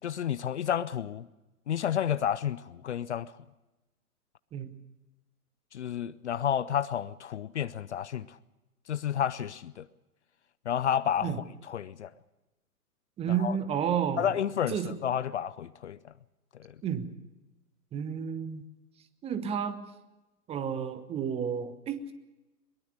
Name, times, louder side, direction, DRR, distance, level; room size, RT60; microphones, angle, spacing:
voice 1, 0.0-1.3 1.7-3.4 5.7-8.4 8.9-9.9 10.6-12.1 13.3-13.6 14.2-16.1 16.6-16.8, left 9 dB, 45° left, 0.7 m, -31 dB
voice 2, 13.2-14.3 14.7-15.0 16.8-17.1 17.9-18.6 19.2-19.8 20.5-22.1, right 8 dB, 15° right, 1.1 m, -31 dB
22.5 x 22.0 x 6.6 m
figure-of-eight pair, 115°, 47 cm